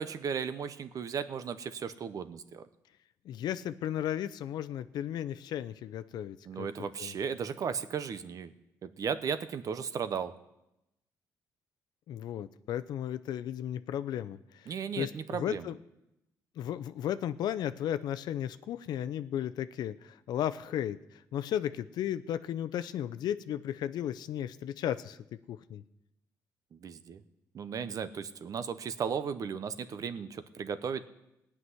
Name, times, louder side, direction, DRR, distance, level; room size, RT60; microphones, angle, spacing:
voice 1, 0.0-2.6 6.5-8.5 8.8-10.3 14.7-15.7 26.7-27.2 27.5-31.0, right 6 dB, 55° right, 12 dB, 0.9 m, -35 dB
voice 2, 3.2-6.7 7.0-7.1 12.1-15.8 16.6-25.2 25.5-25.8, left 10 dB, 80° left, 12 dB, 0.6 m, -35 dB
17.0 x 6.0 x 9.6 m, 0.90 s
cardioid pair, 95°, 7 cm